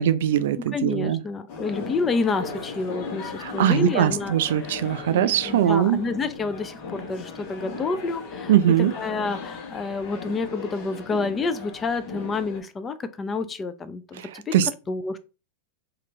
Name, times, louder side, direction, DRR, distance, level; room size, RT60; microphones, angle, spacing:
voice 1, 0.0-1.2 3.4-6.0 8.5-8.9 14.2-14.7, right 10 dB, 60° right, 0.3 m, -21 dB
voice 2, 0.7-4.8 5.1-14.6 14.9-15.2, left 4 dB, 20° left, 0.4 m, -29 dB
sound 1, 1.5-12.6, left 4 dB, 50° left, 0.9 m, -37 dB
3.0 x 2.4 x 3.1 m
figure-of-eight pair, 95°, 0 cm